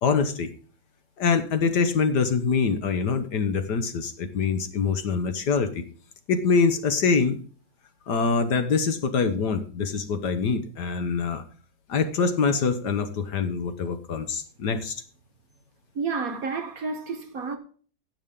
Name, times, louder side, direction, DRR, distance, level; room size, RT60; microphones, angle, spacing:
voice 1, 0.0-0.5 1.2-5.8 6.3-7.4 8.1-11.4 11.9-15.0, left 5 dB, 60° left, 1.5 m, -24 dB
voice 2, 15.9-17.6, right 4 dB, 55° right, 1.2 m, -30 dB
16.5 x 6.7 x 3.7 m
omnidirectional pair, 2.2 m